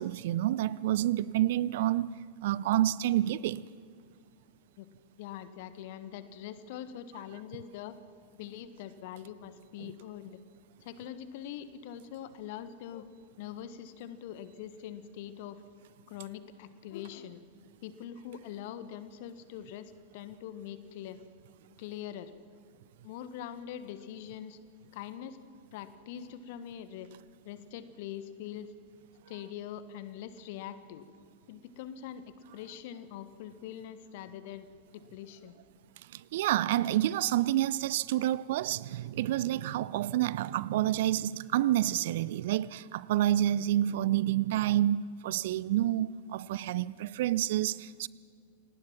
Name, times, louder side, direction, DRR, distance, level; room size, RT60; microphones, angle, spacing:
voice 1, 0.0-2.1 2.4-3.6 9.8-9.9 36.1-48.1, right 13 dB, 55° right, 0.5 m, -28 dB
voice 2, 5.2-7.9 8.4-10.4 10.8-13.1 13.4-15.6 16.1-17.4 17.8-21.2 21.8-22.3 23.0-24.6 24.9-25.4 25.7-27.1 27.4-28.7 29.3-31.0 31.5-32.2 32.5-34.7 34.9-35.6, left 10 dB, 50° left, 1.4 m, -43 dB
27.5 x 19.0 x 6.1 m
figure-of-eight pair, 90°, 0 cm